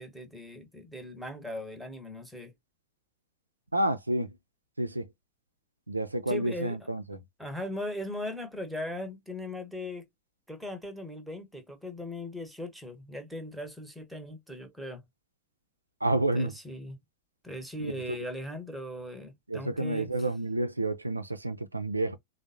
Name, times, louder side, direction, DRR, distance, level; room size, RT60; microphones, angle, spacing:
voice 1, 0.0-2.5 6.3-6.8 7.4-10.1 10.5-15.0 16.3-17.0 17.4-20.1, left 1 dB, ahead, 0.9 m, -39 dB
voice 2, 3.7-4.4 4.8-5.1 5.9-7.2 16.0-16.5 17.8-18.2 19.5-22.2, right 1 dB, 85° right, 0.4 m, -30 dB
3.5 x 2.0 x 2.6 m
figure-of-eight pair, 90°, 0 cm